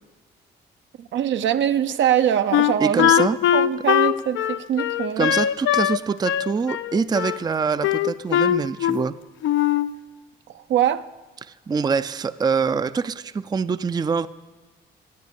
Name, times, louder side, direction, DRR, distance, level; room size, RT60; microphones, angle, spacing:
voice 1, 1.0-3.1 3.5-5.3 10.5-11.1, right 10 dB, 70° right, 11 dB, 0.6 m, -22 dB
Wind instrument woodwind instrument, 2.5-6.0 6.2-7.4 7.8-9.1 9.4-9.9, left 11 dB, 75° left, 0.6 m, -21 dB
voice 2, 2.8-3.4 5.2-9.1 11.4-14.3, right 5 dB, 20° right, 14 dB, 0.4 m, -24 dB
15.0 x 9.6 x 6.9 m, 1.2 s
cardioid pair, 90°, 20 cm